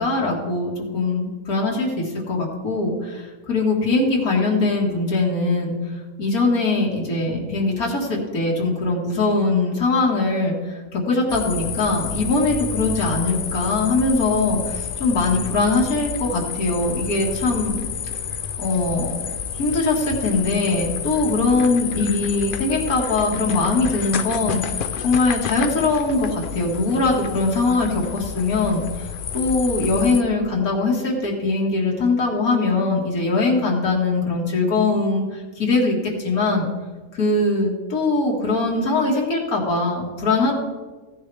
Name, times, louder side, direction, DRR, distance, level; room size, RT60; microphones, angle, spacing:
voice 1, 0.0-5.7 6.2-17.8 18.6-19.1 19.6-29.1 29.3-36.7 37.1-40.5, left 3 dB, 80° left, -2 dB, 2.3 m, -21 dB
sound 1, 11.3-30.2, left 7 dB, 60° left, 0.5 m, -30 dB
15.5 x 10.5 x 3.3 m, 1.4 s
omnidirectional pair, 1.5 m